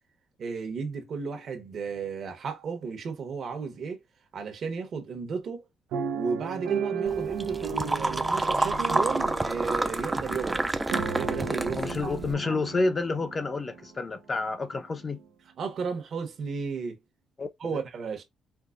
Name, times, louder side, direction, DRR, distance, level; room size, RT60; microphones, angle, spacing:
voice 1, 0.4-4.0 4.3-5.6 6.1-10.7 11.1-12.6 15.6-17.0 17.6-18.2, right 5 dB, 60° right, 1.0 m, -34 dB
sound 1, 5.9-14.0 14.6-14.7 15.0-15.2, right 6 dB, 90° right, 0.5 m, -35 dB
sound 2, 7.1-12.3, right 2 dB, 15° right, 0.4 m, -29 dB
voice 2, 11.7-15.2 17.4-17.8, left 3 dB, 30° left, 0.6 m, -29 dB
4.6 x 2.2 x 2.4 m
cardioid pair, 90°, 0 cm